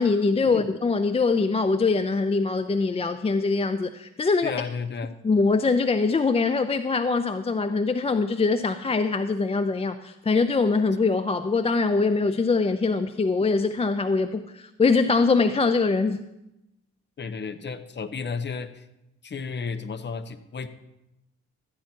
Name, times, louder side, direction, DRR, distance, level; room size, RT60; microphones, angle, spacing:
voice 1, 0.0-4.5 5.2-16.2, left 4 dB, 20° left, 10 dB, 0.5 m, -23 dB
voice 2, 4.4-5.1 17.2-18.8 19.2-20.7, left 5 dB, 35° left, 10 dB, 0.9 m, -33 dB
13.0 x 9.6 x 4.4 m, 0.89 s
cardioid pair, 90°, 30 cm